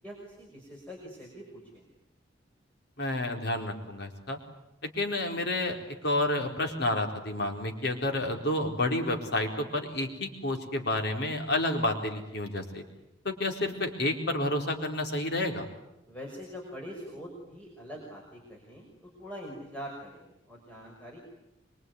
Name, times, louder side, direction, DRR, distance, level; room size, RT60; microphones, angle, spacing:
voice 1, 0.0-1.8 16.1-21.2, equal, 10° left, -2 dB, 5.7 m, -44 dB
voice 2, 3.0-4.4 4.8-5.8 6.0-12.8 13.2-15.7, left 1 dB, 60° left, 3 dB, 4.3 m, -30 dB
24.5 x 24.5 x 9.6 m, 0.89 s
head